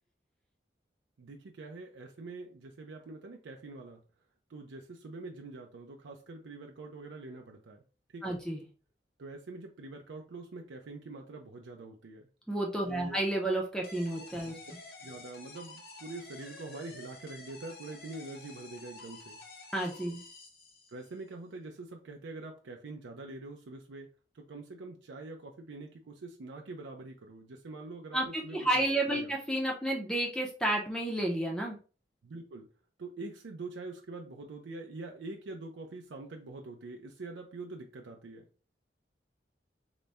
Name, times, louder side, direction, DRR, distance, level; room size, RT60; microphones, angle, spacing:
voice 1, 1.2-4.0 4.5-7.8 8.1-8.4 9.2-12.3 12.9-13.2 14.5-14.6 15.0-19.4 20.9-24.1 24.3-28.8 29.1-29.3 32.2-32.7 33.0-38.5, right 2 dB, 90° right, 2 dB, 0.5 m, -45 dB
voice 2, 8.2-8.6 12.5-14.6 19.7-20.2 28.1-31.8, right 1 dB, 5° left, -1 dB, 0.6 m, -31 dB
sound 1, 13.8-21.2, left 3 dB, 55° left, 0.8 m, -50 dB
3.9 x 2.1 x 3.4 m, 0.37 s
head